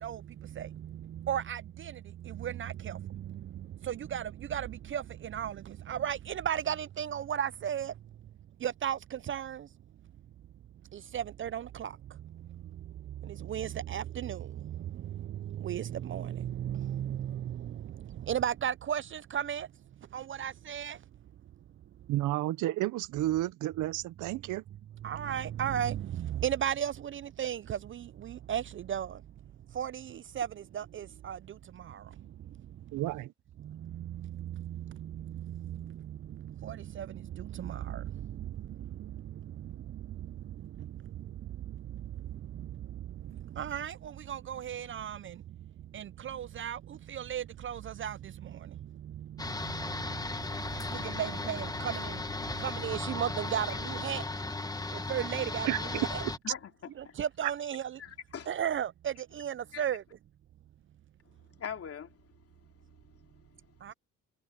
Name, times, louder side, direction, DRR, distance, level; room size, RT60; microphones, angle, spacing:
voice 1, 0.0-8.0 8.6-9.7 10.9-19.7 20.0-21.0 22.0-22.1 25.0-29.3 29.7-33.0 33.6-54.3 54.9-56.2 57.0-58.0 58.5-60.0 63.8-63.9, right 10 dB, 45° right, 0.4 m, -36 dB
voice 2, 22.1-24.6 32.9-33.3 55.7-55.8, right 15 dB, 90° right, 0.8 m, -31 dB
sound 1, 49.4-56.4, left 2 dB, 10° left, 1.2 m, -36 dB
voice 3, 56.4-57.2 58.0-58.5 59.7-59.8 61.5-63.9, left 8 dB, 50° left, 2.8 m, -44 dB
cardioid pair, 90°, 30 cm